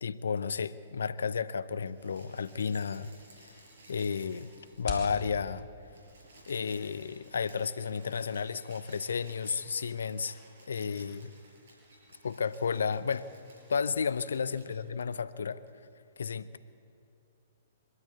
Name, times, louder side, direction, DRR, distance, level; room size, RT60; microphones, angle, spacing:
voice 1, 0.0-3.1 3.9-4.5 4.8-5.7 6.5-10.4 10.7-11.3 12.2-13.3 13.7-15.6 16.2-16.6, left 6 dB, 75° left, 16 dB, 0.7 m, -32 dB
sound 1, 1.7-5.1 5.4-5.5 5.7-14.7 15.7-15.8, right 2 dB, 65° right, 6.5 m, -57 dB
sound 2, 3.1-9.4, left 3 dB, 40° left, 4.6 m, -47 dB
24.5 x 13.0 x 8.3 m, 2.6 s
figure-of-eight pair, 120°, 0 cm